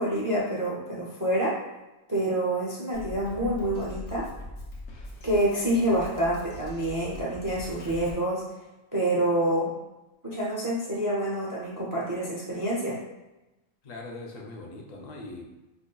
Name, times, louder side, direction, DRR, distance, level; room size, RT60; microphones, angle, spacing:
voice 1, 0.0-1.6 2.1-4.3 5.2-8.4 8.9-9.7 10.2-13.0, right 1 dB, 30° right, -6 dB, 0.4 m, -27 dB
Drum kit, 2.9-8.1, left 1 dB, 80° left, 1.0 m, -41 dB
voice 2, 13.8-15.5, left 2 dB, 50° left, 0 dB, 0.5 m, -41 dB
5.1 x 2.5 x 2.2 m, 1.0 s
omnidirectional pair, 1.4 m